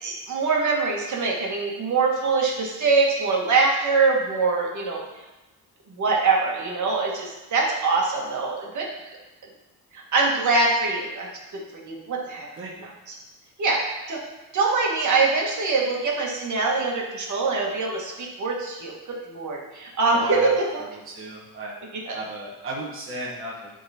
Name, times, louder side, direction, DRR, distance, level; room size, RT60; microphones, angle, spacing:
voice 1, 0.0-5.0 5.9-8.9 9.9-11.3 11.5-12.5 13.1-13.2 13.6-13.8 14.1-14.2 14.5-20.8 22.1-22.2, right 4 dB, 50° right, -2 dB, 1.8 m, -23 dB
voice 2, 12.6-12.9 20.1-20.5 21.0-21.7 22.1-23.7, right 1 dB, 35° right, -5 dB, 1.3 m, -34 dB
11.5 x 3.9 x 4.3 m, 1.0 s
cardioid pair, 155°, 37 cm